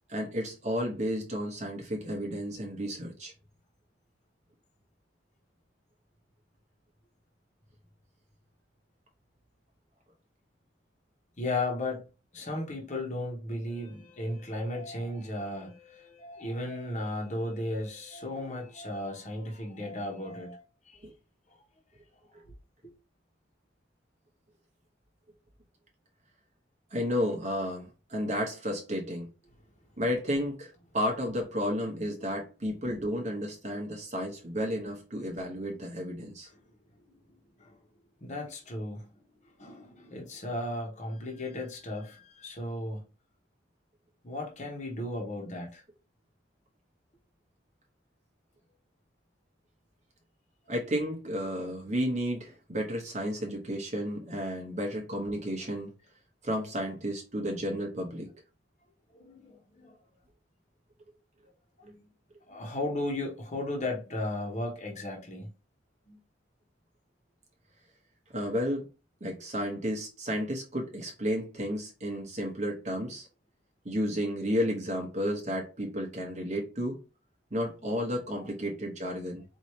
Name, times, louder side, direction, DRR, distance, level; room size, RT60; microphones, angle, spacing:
voice 1, 0.1-3.3 21.0-21.1 22.3-22.4 26.9-29.3 30.0-36.5 50.7-55.9 56.4-58.3 68.3-68.9 69.2-73.3 73.8-77.0 77.5-79.4, equal, 40° right, 1.0 m, -32 dB
voice 2, 11.4-12.0 12.3-21.1 21.5-21.6 22.8-22.9 36.4-36.5 37.6-37.8 38.2-43.0 44.2-45.8 59.1-60.0 61.8-62.1 62.5-65.5 66.1-66.2 78.6-78.7, left 1 dB, 40° left, 1.2 m, -35 dB
4.7 x 2.8 x 3.1 m
head